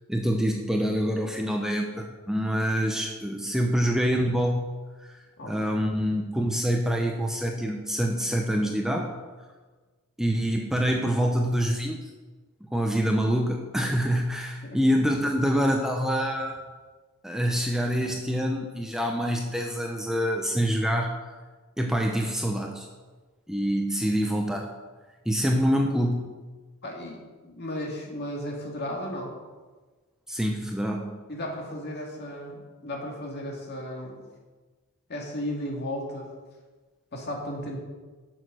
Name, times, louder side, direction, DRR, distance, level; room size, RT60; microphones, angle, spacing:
voice 1, 0.1-4.6 5.0-9.1 10.2-12.1 12.6-16.6 17.2-21.2 21.8-22.9 23.5-24.7 25.3-26.3 30.3-31.2, equal, ahead, 1 dB, 0.7 m, -26 dB
voice 2, 5.4-5.8 14.6-14.8 26.8-29.3 31.3-34.2 35.1-36.3 37.1-37.8, left 1 dB, 50° left, 0 dB, 2.1 m, -35 dB
9.0 x 6.6 x 6.2 m, 1.3 s
head